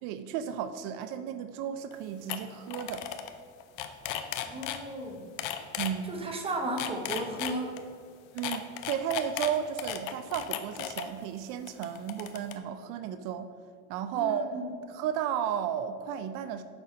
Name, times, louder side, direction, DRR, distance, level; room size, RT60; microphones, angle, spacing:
voice 1, 0.0-3.1 5.8-6.1 8.3-13.5 13.9-14.5 14.9-16.6, right 9 dB, 75° right, 10 dB, 0.5 m, -33 dB
sound 1, 1.9-2.0 2.3-2.4 2.7-3.3 3.6-4.8 5.4-5.9 6.6-7.8 8.4-11.0 11.7-12.5, left 11 dB, 70° left, 0.7 m, -35 dB
voice 2, 4.4-5.3 6.0-7.8 14.1-14.7, right 1 dB, 15° right, 2 dB, 0.9 m, -35 dB
6.9 x 5.5 x 5.1 m, 2.2 s
cardioid pair, 160°, 32 cm